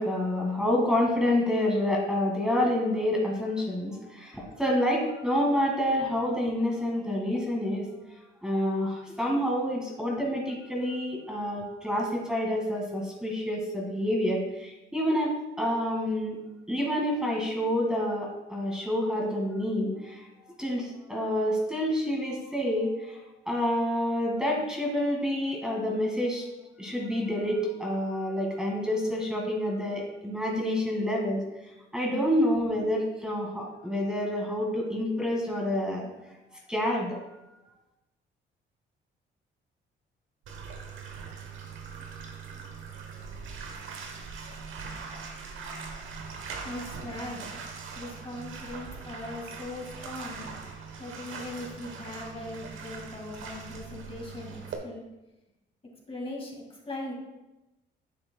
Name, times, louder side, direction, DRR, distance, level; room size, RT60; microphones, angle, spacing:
voice 1, 0.0-7.9 8.4-15.3 15.6-16.4 16.7-20.2 20.6-26.4 26.8-31.4 31.9-36.1 36.7-37.1, left 1 dB, 5° right, -2 dB, 1.9 m, -28 dB
Bathtub (filling or washing), 40.5-54.8, right 5 dB, 80° right, 1.1 m, -41 dB
voice 2, 46.6-47.5 48.0-50.5 51.0-55.0 56.1-57.1, left 2 dB, 30° left, -1 dB, 1.9 m, -39 dB
9.8 x 6.7 x 2.2 m, 1.0 s
cardioid pair, 90°, 20 cm